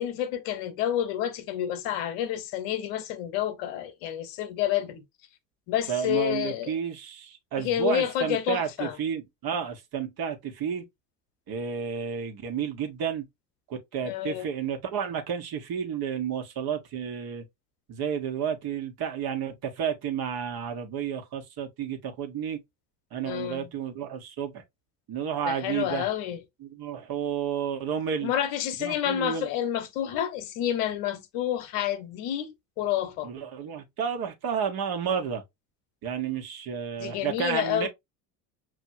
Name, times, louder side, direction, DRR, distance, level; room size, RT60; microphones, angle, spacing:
voice 1, 0.0-5.0 5.7-6.8 7.6-9.0 14.0-14.5 23.2-23.7 25.5-26.4 28.2-33.3 37.0-37.9, left 11 dB, 60° left, 0.9 m, -29 dB
voice 2, 5.9-10.8 11.5-13.2 13.7-17.4 17.9-22.6 23.1-24.6 25.1-26.1 26.6-28.3 28.8-29.5 33.2-35.4 36.0-37.9, right 7 dB, 50° right, 1.3 m, -31 dB
6.3 x 2.6 x 2.6 m
hypercardioid pair, 65°, 49 cm